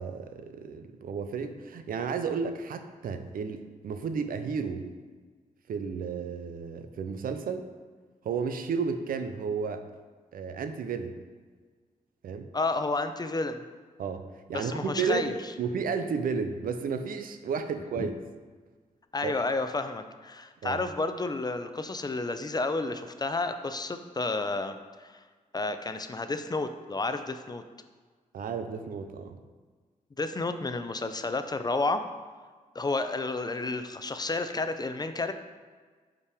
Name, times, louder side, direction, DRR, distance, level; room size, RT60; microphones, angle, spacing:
voice 1, 0.0-4.8 5.7-7.6 8.2-9.8 10.3-11.1 12.2-12.5 14.0-14.2 14.5-18.1 19.2-19.3 20.6-20.8 28.3-29.4, right 5 dB, 80° right, 8 dB, 0.6 m, -32 dB
voice 2, 12.5-13.6 14.5-15.4 18.0-18.1 19.1-25.2 25.5-27.6 30.2-32.0 32.7-35.3, left 3 dB, 30° left, 9 dB, 0.5 m, -31 dB
5.4 x 5.2 x 4.9 m, 1.5 s
cardioid pair, 65°, 15 cm